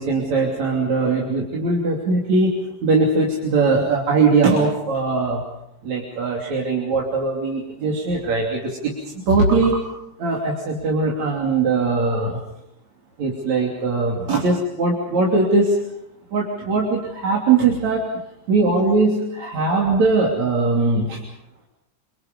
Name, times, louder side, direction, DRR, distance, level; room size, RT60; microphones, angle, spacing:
voice 1, 0.0-5.4 5.8-8.9 9.3-9.8 10.2-12.4 13.2-15.8 16.3-18.0 18.5-21.2, right 3 dB, 70° right, -2 dB, 4.5 m, -20 dB
29.5 x 25.0 x 5.5 m, 0.80 s
omnidirectional pair, 3.4 m